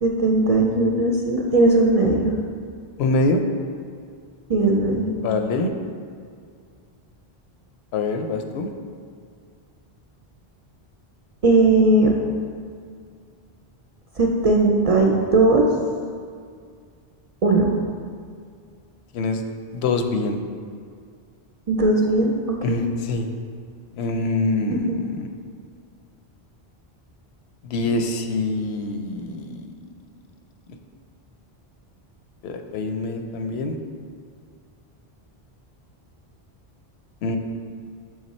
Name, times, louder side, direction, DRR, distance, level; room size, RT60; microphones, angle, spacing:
voice 1, 0.0-2.3 4.5-5.1 11.4-12.1 14.2-15.7 17.4-17.8 21.7-22.9 24.7-25.0, right 2 dB, 50° right, -1 dB, 0.4 m, -18 dB
voice 2, 3.0-3.4 5.2-5.7 7.9-8.7 19.1-19.4 19.7-20.4 22.6-23.3 24.0-25.3 27.6-29.7 32.4-33.8 37.2-37.4, left 3 dB, 85° left, 5 dB, 0.8 m, -25 dB
6.5 x 3.6 x 4.1 m, 2.1 s
omnidirectional pair, 1.1 m